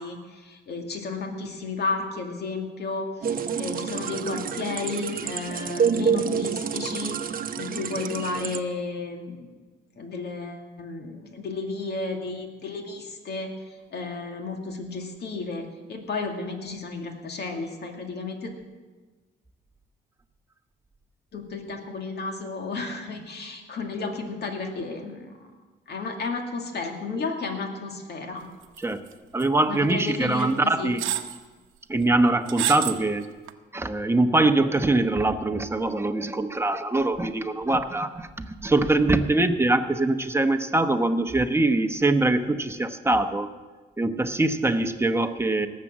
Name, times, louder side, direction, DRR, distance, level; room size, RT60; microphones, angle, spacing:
voice 1, 0.0-7.2 7.6-9.5 10.0-13.5 13.9-18.5 21.3-25.3 25.9-28.4 29.7-30.9, left 3 dB, 55° left, 3 dB, 2.3 m, -33 dB
sound 1, 3.2-8.6, right 7 dB, 45° right, 0.9 m, -28 dB
sound 2, 28.8-29.1 29.4-29.5 30.4-30.5 31.0-31.4 32.5-33.0 33.5-33.6, right 11 dB, 85° right, 0.9 m, -28 dB
voice 2, 29.3-31.0 31.9-33.3 33.7-43.5 44.0-45.7, right 2 dB, 10° right, 7 dB, 1.0 m, -23 dB
18.5 x 7.6 x 7.3 m, 1.3 s
cardioid pair, 90°, 20 cm